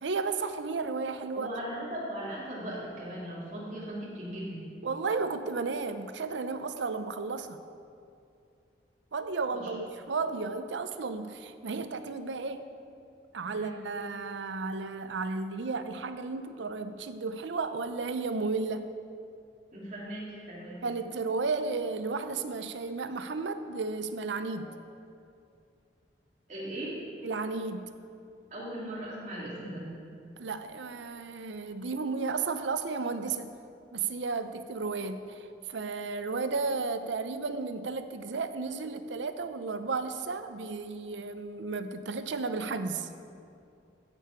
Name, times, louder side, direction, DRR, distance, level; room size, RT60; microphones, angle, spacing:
voice 1, 0.0-1.5 4.8-7.6 9.1-12.7 13.3-19.0 20.8-24.8 27.2-28.0 30.4-33.5 33.9-43.1, right 4 dB, 85° right, 10 dB, 0.6 m, -33 dB
voice 2, 1.3-4.6 9.5-9.7 13.5-13.7 19.7-20.8 24.6-24.7 26.5-26.9 28.5-29.9, right 1 dB, 40° right, -7 dB, 3.0 m, -38 dB
14.5 x 6.9 x 4.5 m, 2.5 s
head